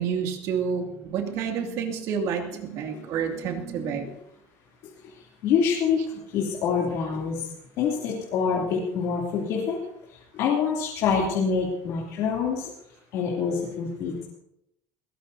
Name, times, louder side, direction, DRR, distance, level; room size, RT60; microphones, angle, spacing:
voice 1, 0.0-4.1, right 6 dB, 50° right, 3 dB, 2.5 m, -29 dB
voice 2, 5.4-6.0 6.3-7.4 7.8-9.8 10.3-12.7 13.1-14.3, left 6 dB, 55° left, -4 dB, 3.0 m, -25 dB
21.0 x 18.0 x 2.8 m, 0.82 s
cardioid pair, 175°, 7 cm